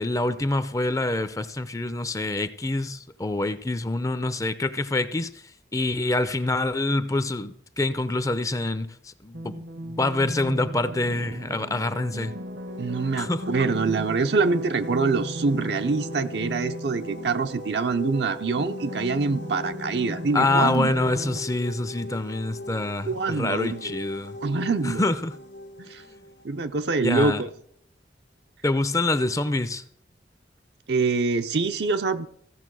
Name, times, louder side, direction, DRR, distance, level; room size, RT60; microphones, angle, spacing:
voice 1, 0.0-5.3 5.7-12.3 13.2-13.4 20.3-24.4 24.8-25.3 27.0-27.4 28.6-29.8, left 2 dB, 20° left, 0.5 m, -26 dB
sound 1, 9.3-21.4, right 1 dB, 85° right, 1.2 m, -36 dB
sound 2, 12.5-27.2, left 1 dB, 90° left, 1.7 m, -40 dB
voice 2, 12.8-20.9 23.0-23.9 24.4-25.0 25.9-26.0 26.4-27.5 30.9-32.3, right 4 dB, 65° right, 0.6 m, -25 dB
15.5 x 7.1 x 6.2 m
head